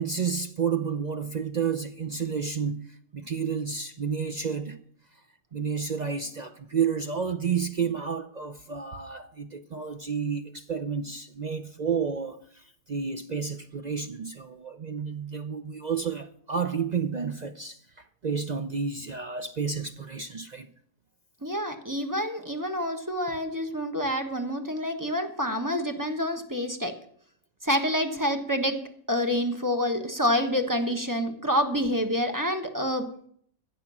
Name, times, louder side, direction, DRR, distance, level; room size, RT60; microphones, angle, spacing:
voice 1, 0.0-4.8 5.5-17.8 18.2-20.7, right 6 dB, 60° right, 0.4 m, -31 dB
voice 2, 21.4-26.9 27.6-28.8 29.1-33.1, equal, 15° right, 1.1 m, -27 dB
15.5 x 6.0 x 7.3 m
omnidirectional pair, 1.5 m